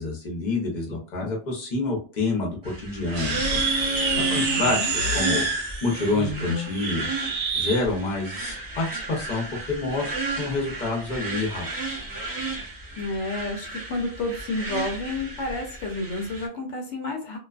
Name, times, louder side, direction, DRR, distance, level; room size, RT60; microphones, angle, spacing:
voice 1, 0.0-3.6 4.1-7.1 7.5-10.1 10.4-11.7, left 3 dB, 45° left, -1 dB, 0.9 m, -28 dB
sound 1, 2.6-16.5, right 2 dB, 30° right, 0.3 m, -33 dB
sound 2, 3.1-7.8, right 3 dB, 65° right, 0.9 m, -27 dB
voice 2, 4.1-4.9 13.0-17.4, left 2 dB, 75° left, 1 dB, 0.9 m, -30 dB
2.5 x 2.3 x 2.3 m, 0.39 s
omnidirectional pair, 1.2 m